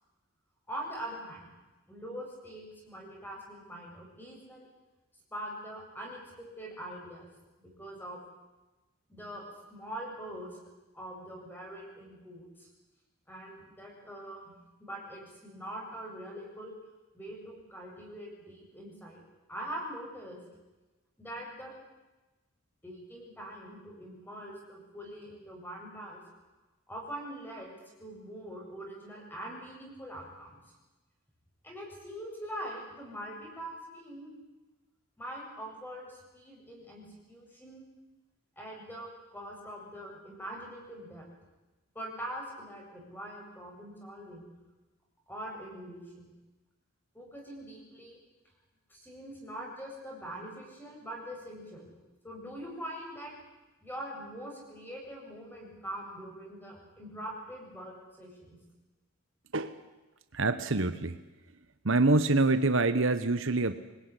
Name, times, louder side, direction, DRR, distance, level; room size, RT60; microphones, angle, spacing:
voice 1, 0.7-1.5 1.9-4.7 5.3-7.3 7.6-8.2 9.1-10.6 10.9-12.7 13.3-14.5 14.8-16.8 17.1-19.2 19.5-20.4 21.2-21.7 22.8-26.2 26.9-30.6 31.6-34.3 35.2-37.8 38.6-41.3 41.9-44.5 45.3-46.3 47.1-48.2 48.9-51.9 52.2-53.3 53.8-58.6, right 1 dB, 10° left, -1 dB, 7.6 m, -43 dB
voice 2, 60.3-61.2 61.8-63.7, right 2 dB, 60° right, 11 dB, 1.2 m, -25 dB
25.5 x 21.0 x 9.9 m, 1.1 s
head